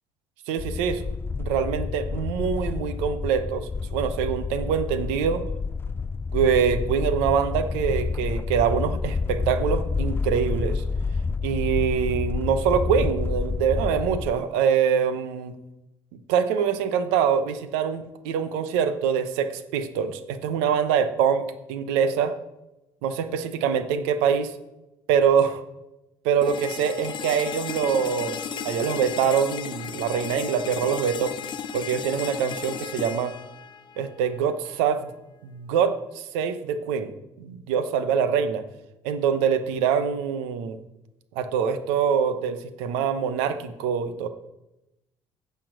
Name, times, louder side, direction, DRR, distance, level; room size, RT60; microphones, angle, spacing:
voice 1, 0.5-1.0 1.4-5.4 6.3-10.8 11.4-15.5 16.3-22.3 23.0-24.5 25.1-25.6 26.2-28.4 28.6-31.3 31.7-33.3 34.0-35.1 35.4-37.1 37.4-38.6 39.0-40.8 41.3-44.3, right 7 dB, 90° right, 10 dB, 0.9 m, -24 dB
sound 1, 0.6-14.3, left 4 dB, 20° left, 0.3 m, -29 dB
sound 2, 26.4-34.4, left 8 dB, 50° left, 0.7 m, -35 dB
9.0 x 7.0 x 6.3 m, 0.94 s
supercardioid pair, 85°, 10 cm